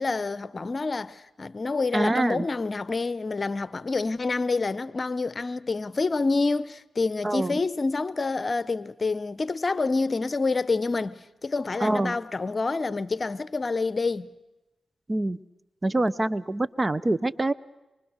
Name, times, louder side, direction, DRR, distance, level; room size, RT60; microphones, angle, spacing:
voice 1, 0.0-14.3, left 3 dB, 45° left, 0.9 m, -27 dB
voice 2, 1.9-2.5 7.2-7.6 11.8-12.2 15.1-15.4 15.8-17.5, right 2 dB, 30° right, 0.8 m, -25 dB
25.0 x 24.0 x 6.5 m
supercardioid pair, 50°, 0 cm